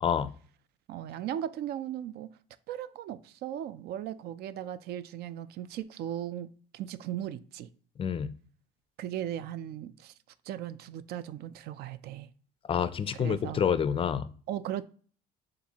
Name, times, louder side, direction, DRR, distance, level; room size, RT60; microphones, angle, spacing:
voice 1, 0.9-2.3 2.7-7.7 9.0-10.1 10.5-12.3 13.1-13.6 14.5-14.9, right 11 dB, 70° right, 0.4 m, -37 dB
voice 2, 8.0-8.3 12.7-14.3, left 7 dB, 35° left, 0.3 m, -28 dB
6.8 x 2.5 x 2.8 m
cardioid pair, 110°, 17 cm